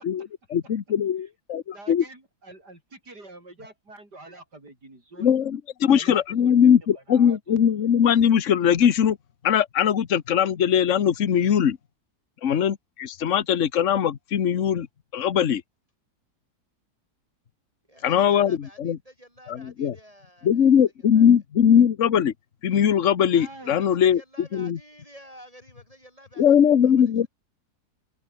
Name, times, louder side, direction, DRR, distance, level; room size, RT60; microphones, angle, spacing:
voice 1, 0.0-2.0 5.2-9.2 9.4-11.8 12.4-14.9 15.1-15.6 18.0-19.0 19.5-19.9 20.4-22.3 22.6-24.2 24.5-24.8 26.4-27.3, left 8 dB, 50° left, 1.4 m, -20 dB
voice 2, 1.7-5.3 5.9-6.7 6.9-7.6 23.3-24.0, right 2 dB, 80° right, 7.7 m, -46 dB
voice 3, 17.9-20.8 21.1-21.3 23.6-27.3, equal, 20° right, 6.3 m, -51 dB
omnidirectional pair, 1.7 m